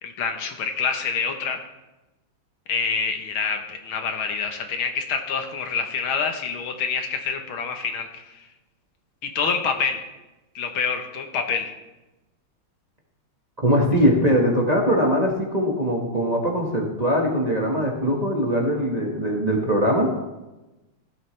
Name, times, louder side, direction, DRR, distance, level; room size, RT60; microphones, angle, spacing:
voice 1, 0.0-1.6 2.7-8.4 9.2-10.0 10.6-11.7, left 5 dB, 75° left, 5 dB, 1.9 m, -27 dB
voice 2, 13.6-20.1, equal, 20° right, -1 dB, 1.5 m, -21 dB
16.0 x 12.5 x 3.3 m, 1.0 s
omnidirectional pair, 2.4 m